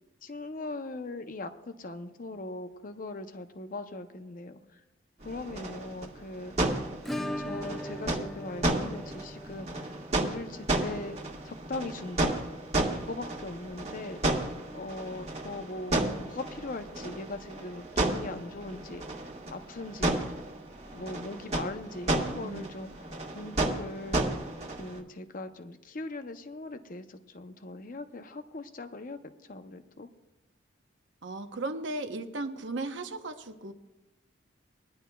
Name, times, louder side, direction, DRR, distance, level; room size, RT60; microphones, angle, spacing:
voice 1, 0.2-4.8 5.2-6.6 7.1-11.2 11.4-12.4 12.9-14.4 14.7-20.2 20.9-22.9 23.3-24.3 24.8-29.2 29.5-30.1, left 2 dB, 45° left, 8 dB, 0.7 m, -40 dB
sound 1, 5.2-25.0, right 2 dB, 35° right, 1.4 m, -33 dB
Acoustic guitar / Strum, 7.0-15.7 15.9-16.0 16.3-16.4 16.8-16.9 18.9-19.0 20.1-20.2, equal, ahead, 0.4 m, -42 dB
voice 2, 31.2-33.7, right 2 dB, 70° right, 7 dB, 0.9 m, -36 dB
21.5 x 10.5 x 2.3 m, 1.0 s
head